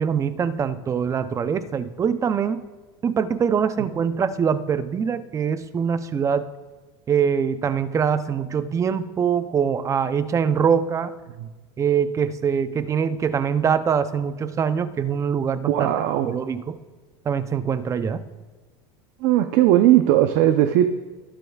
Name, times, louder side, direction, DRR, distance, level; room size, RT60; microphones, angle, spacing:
voice 1, 0.0-2.6 3.0-6.5 7.1-11.1 11.8-15.9 16.2-16.8 17.3-18.2, right 7 dB, 20° right, 13 dB, 0.5 m, -23 dB
voice 2, 15.7-16.3 19.2-20.9, right 13 dB, 65° right, 8 dB, 0.7 m, -18 dB
19.0 x 12.0 x 2.4 m, 1.2 s
supercardioid pair, 130°, 14 cm